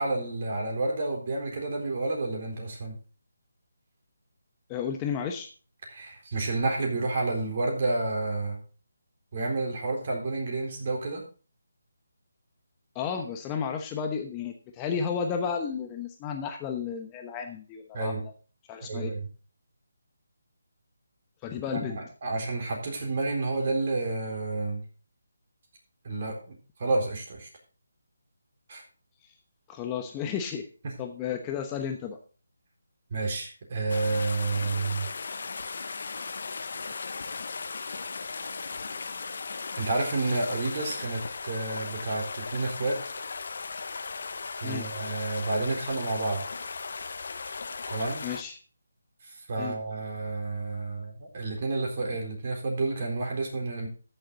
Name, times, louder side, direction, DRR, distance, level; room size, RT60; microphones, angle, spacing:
voice 1, 0.0-3.0 5.9-8.6 9.3-11.2 17.9-18.2 18.9-19.3 21.7-24.8 26.0-27.5 28.7-28.8 30.8-30.9 33.1-35.1 39.8-43.0 44.6-46.4 47.9-48.2 49.3-53.9, right 2 dB, 45° right, 1 dB, 4.0 m, -30 dB
voice 2, 4.7-5.5 12.9-18.3 18.7-19.1 21.4-22.0 29.7-30.7 31.0-32.2 44.6-44.8 48.2-48.6 49.6-49.8, left 7 dB, 15° left, 4 dB, 0.9 m, -32 dB
sound 1, 33.9-48.4, left 4 dB, 60° left, 1.0 m, -37 dB
13.5 x 6.7 x 4.0 m, 0.38 s
figure-of-eight pair, 160°, 0 cm